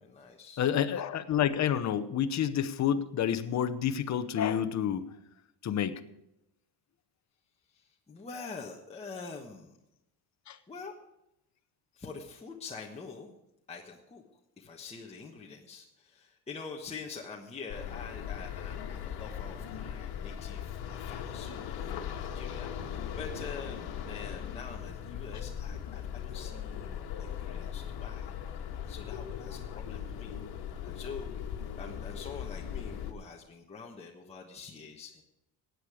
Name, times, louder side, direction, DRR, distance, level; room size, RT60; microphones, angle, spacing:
voice 1, 0.0-0.8 7.7-9.7 10.7-10.9 12.0-13.4 13.7-14.2 14.6-28.3 28.8-31.3 31.7-35.2, left 4 dB, 15° left, -1 dB, 1.2 m, -45 dB
voice 2, 0.6-5.0 5.6-6.0 10.5-10.6, left 9 dB, 40° left, 11 dB, 0.9 m, -29 dB
sound 1, 17.7-33.1, left 9 dB, 60° left, 1.7 m, -39 dB
16.5 x 9.4 x 4.9 m, 0.86 s
cardioid pair, 150°, 43 cm